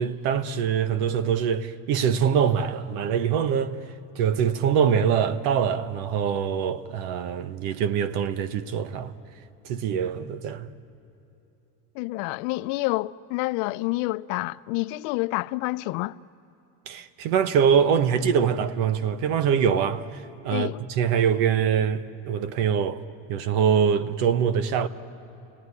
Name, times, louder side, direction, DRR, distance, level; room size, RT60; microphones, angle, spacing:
voice 1, 0.0-3.7 4.2-9.1 9.6-10.7 16.9-23.0 23.3-24.9, right 7 dB, 75° right, 1.2 m, -24 dB
voice 2, 12.0-16.2 20.5-20.8, left 20 dB, 75° left, 0.6 m, -28 dB
30.0 x 18.5 x 9.7 m
cardioid pair, 155°, 39 cm